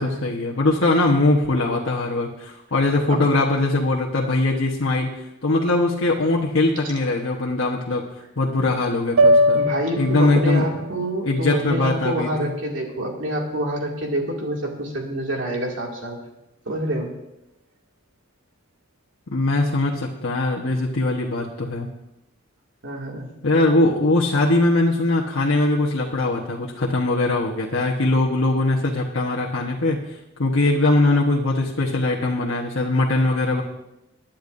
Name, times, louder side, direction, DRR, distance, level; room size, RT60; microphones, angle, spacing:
voice 1, 0.0-8.0 8.4-9.6 10.0-10.7 11.2-12.5 19.3-21.9 23.4-30.0 30.4-33.6, left 2 dB, 80° left, -3 dB, 1.2 m, -21 dB
sound 1, 9.2-13.4, equal, 90° right, 0.6 m, -23 dB
voice 2, 9.5-16.2 16.7-17.1 22.8-23.3, right 1 dB, 70° right, 0 dB, 2.4 m, -27 dB
20.5 x 10.5 x 2.7 m, 0.90 s
head